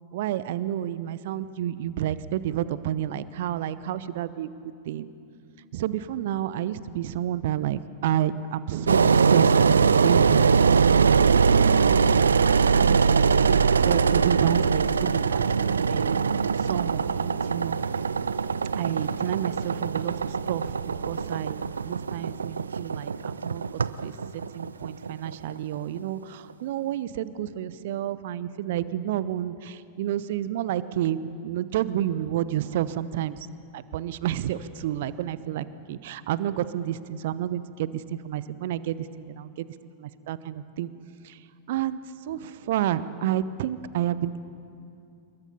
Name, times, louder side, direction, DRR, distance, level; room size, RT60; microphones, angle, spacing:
voice 1, 0.1-4.5 4.9-5.1 5.7-10.8 12.8-16.3 16.6-17.8 18.8-20.6 21.0-24.1 24.5-33.5 33.7-39.7 40.0-40.9 41.2-41.4 41.7-42.0 42.3-44.4, right 11 dB, 55° right, 16 dB, 0.9 m, -30 dB
Engine, 8.9-25.8, right 5 dB, 70° right, 0.5 m, -22 dB
27.5 x 22.0 x 5.6 m, 2.5 s
figure-of-eight pair, 90°, 0 cm